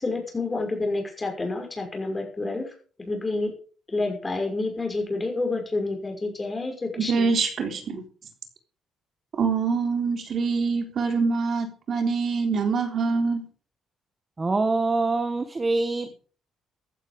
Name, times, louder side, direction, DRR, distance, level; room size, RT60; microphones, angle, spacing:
voice 1, 0.0-2.7 3.0-3.5 3.9-7.3, left 2 dB, 20° left, 2 dB, 6.0 m, -29 dB
voice 2, 7.0-8.0 9.4-13.5, right 4 dB, 50° right, 5 dB, 3.7 m, -25 dB
voice 3, 14.4-16.2, right 3 dB, 20° right, 9 dB, 1.3 m, -24 dB
15.0 x 11.5 x 5.1 m, 0.41 s
cardioid pair, 130°, 0 cm